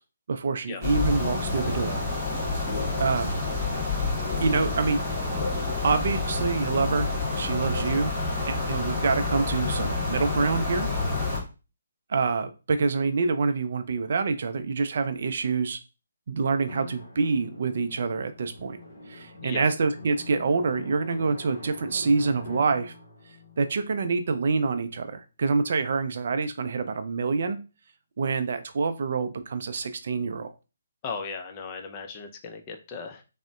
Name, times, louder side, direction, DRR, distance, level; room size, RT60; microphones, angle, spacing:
voice 1, 0.3-2.0 3.0-3.4 4.4-5.3 5.8-8.1 8.5-10.9 12.1-15.8 16.3-18.8 19.1-22.9 23.6-27.6 28.2-30.5, right 4 dB, 55° right, 9 dB, 0.3 m, -26 dB
sound 1, 0.8-11.4, left 3 dB, 15° left, 1.5 m, -28 dB
Drum, 16.7-25.0, left 2 dB, 50° left, 0.9 m, -44 dB
voice 2, 31.0-33.2, left 5 dB, 30° left, 4 dB, 0.4 m, -36 dB
3.6 x 2.1 x 2.2 m, 0.31 s
figure-of-eight pair, 145°, 0 cm